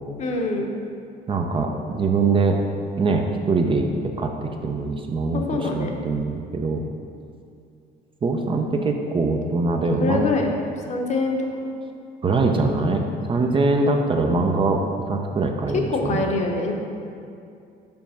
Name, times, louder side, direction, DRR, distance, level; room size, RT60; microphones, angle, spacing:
voice 1, 0.2-0.7 5.3-5.9 10.0-10.5 10.9-11.4 15.7-16.7, left 3 dB, 45° left, 1 dB, 0.9 m, -24 dB
voice 2, 1.3-2.6 3.0-6.8 8.2-10.3 12.2-16.2, right 3 dB, 30° right, 3 dB, 0.5 m, -23 dB
5.2 x 4.5 x 5.6 m, 2.4 s
cardioid pair, 110°, 17 cm